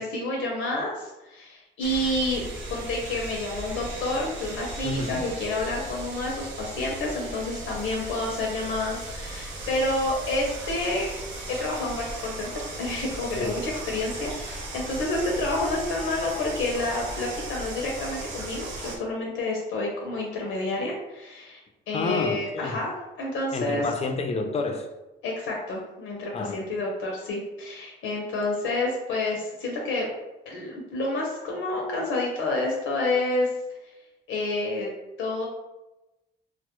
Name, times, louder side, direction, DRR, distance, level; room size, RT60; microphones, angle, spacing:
voice 1, 0.0-11.1 11.5-21.6 21.9-22.9 23.2-23.8 25.2-30.1 30.5-33.5 34.3-34.9 35.2-35.5, left 2 dB, 85° left, -1 dB, 0.5 m, -29 dB
sound 1, 1.8-19.0, right 2 dB, 70° right, 0.5 m, -37 dB
voice 2, 4.8-5.2 13.3-13.6 21.9-22.8 23.5-24.9 26.3-26.6, left 3 dB, 30° left, 4 dB, 0.4 m, -29 dB
2.1 x 2.0 x 2.8 m, 1.0 s
cardioid pair, 90°, 20 cm